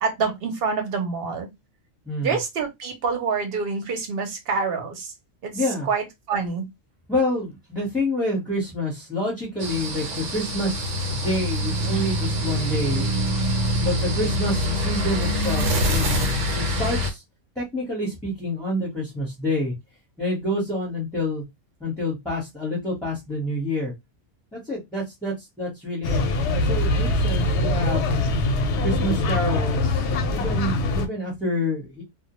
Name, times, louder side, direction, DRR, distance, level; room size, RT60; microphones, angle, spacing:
voice 1, 0.0-1.5 2.2-5.1 5.4-6.6, right 5 dB, 55° right, 0.9 m, -27 dB
voice 2, 2.0-2.4 5.5-5.9 7.1-13.1 13.8-17.2 17.5-19.7 20.2-21.4 21.8-23.9 24.5-28.1 28.8-32.0, left 1 dB, ahead, 0.8 m, -28 dB
sound 1, 9.6-17.1, equal, 80° right, 1.1 m, -25 dB
sound 2, 26.0-31.1, left 2 dB, 70° left, 0.8 m, -23 dB
2.2 x 2.2 x 2.9 m
omnidirectional pair, 1.3 m